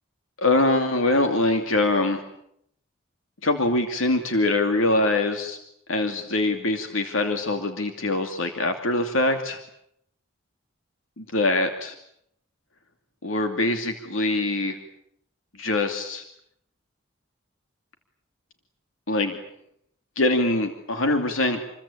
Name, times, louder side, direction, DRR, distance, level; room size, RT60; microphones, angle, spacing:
voice 1, 0.4-2.2 3.4-5.6 5.9-9.6 11.2-11.9 13.2-14.8 15.6-16.2 19.1-19.4 20.2-21.6, left 2 dB, 90° left, 5 dB, 2.7 m, -23 dB
28.5 x 22.0 x 8.7 m, 0.74 s
head